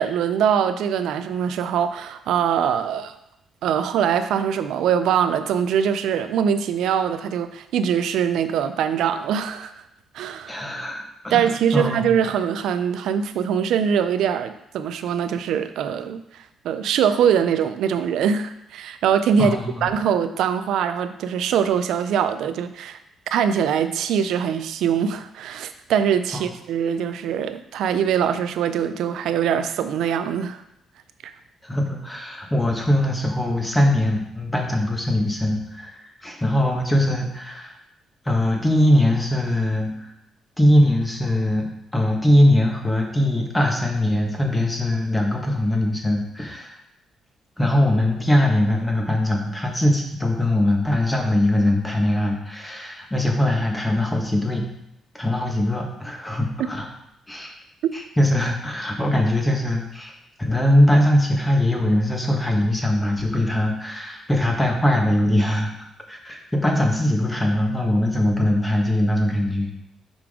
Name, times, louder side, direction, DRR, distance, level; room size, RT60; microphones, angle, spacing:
voice 1, 0.0-3.1 3.6-9.7 10.1-10.6 11.3-16.2 16.6-23.0 23.3-30.6 31.2-31.3, right 8 dB, 80° right, 11 dB, 0.4 m, -22 dB
voice 2, 10.5-12.3 19.4-19.9 26.3-26.4 31.6-37.7 38.2-40.1 40.6-41.7 41.9-46.8 47.6-54.6 55.1-56.9 57.3-57.5 57.9-60.1 60.4-65.7 66.1-69.8, left 1 dB, 10° left, 1 dB, 1.4 m, -21 dB
5.9 x 5.1 x 3.7 m, 0.82 s
cardioid pair, 90°, 0 cm